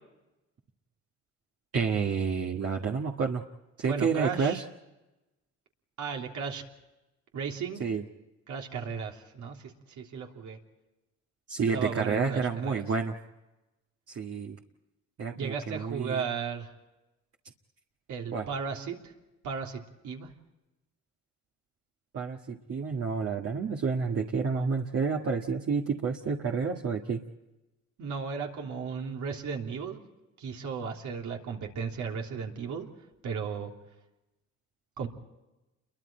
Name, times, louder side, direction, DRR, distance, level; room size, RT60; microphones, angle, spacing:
voice 1, 1.7-3.4 3.8-4.6 7.8-8.0 11.5-13.1 14.1-14.6 15.2-16.2 18.3-18.5 22.1-27.2, right 5 dB, 50° right, 0 dB, 1.8 m, -29 dB
voice 2, 3.9-4.6 6.0-6.6 7.3-7.9 8.5-10.6 11.7-12.8 15.3-16.7 18.1-19.1 19.4-20.3 28.0-30.0 30.4-32.9 33.2-33.7 35.0-35.1, right 6 dB, 75° right, 1 dB, 3.3 m, -35 dB
29.5 x 23.0 x 4.5 m, 1.0 s
cardioid pair, 90°, 30 cm